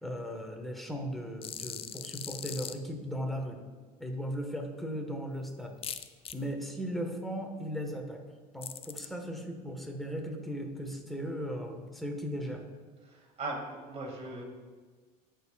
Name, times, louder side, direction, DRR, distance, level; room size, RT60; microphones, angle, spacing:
voice 1, 0.0-3.6 4.0-5.7 6.3-8.2 8.5-12.6, equal, ahead, 2 dB, 1.3 m, -37 dB
sound 1, 1.4-2.8 5.8-6.3 8.6-9.1, left 8 dB, 30° left, 0.4 m, -40 dB
voice 2, 13.0-14.4, right 2 dB, 30° right, -2 dB, 2.1 m, -39 dB
12.5 x 4.4 x 2.3 m, 1.5 s
hypercardioid pair, 85°, 21 cm